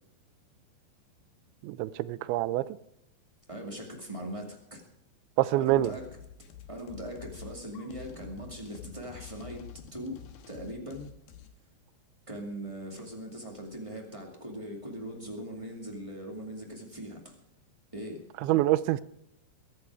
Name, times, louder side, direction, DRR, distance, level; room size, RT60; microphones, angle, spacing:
voice 1, 1.6-2.6 5.4-5.9 18.4-19.0, right 15 dB, 90° right, 3.0 m, -26 dB
voice 2, 3.5-4.8 5.5-6.2 6.7-11.1 12.3-17.4 17.9-18.2, right 1 dB, 35° right, 0.5 m, -40 dB
sound 1, 5.7-11.5, left 9 dB, 70° left, 3.0 m, -48 dB
22.5 x 10.0 x 4.8 m
omnidirectional pair, 5.1 m